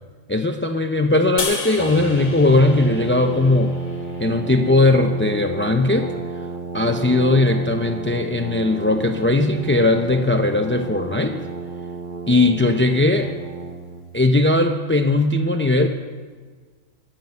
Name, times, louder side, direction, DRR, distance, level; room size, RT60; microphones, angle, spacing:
voice 1, 0.3-3.7 4.2-6.1 6.7-11.4 12.3-13.3 14.1-15.9, left 2 dB, 20° left, 5 dB, 0.3 m, -18 dB
sound 1, 1.4-4.7, left 4 dB, 75° left, 2.0 m, -32 dB
Brass instrument, 1.8-14.0, right 4 dB, 40° right, 1.4 m, -32 dB
22.5 x 7.5 x 8.1 m, 1.5 s
omnidirectional pair, 1.4 m